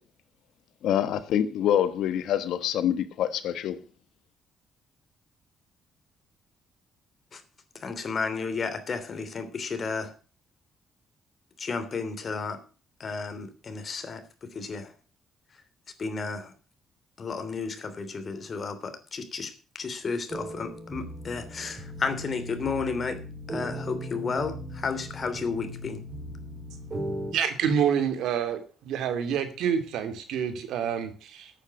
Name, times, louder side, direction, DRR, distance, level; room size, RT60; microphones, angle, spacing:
voice 1, 0.8-3.8, left 10 dB, 80° left, 1.1 m, -26 dB
voice 2, 7.8-10.1 11.6-12.6 13.0-14.2 14.5-14.9 16.0-16.5 17.2-19.5 19.8-23.2 23.5-26.0, left 4 dB, 45° left, 3.0 m, -32 dB
sound 1, 20.3-27.3, equal, 40° right, 5.0 m, -38 dB
voice 3, 27.3-28.6 28.9-31.5, right 8 dB, 85° right, 2.5 m, -27 dB
10.0 x 9.2 x 8.2 m
cardioid pair, 90°, 0 cm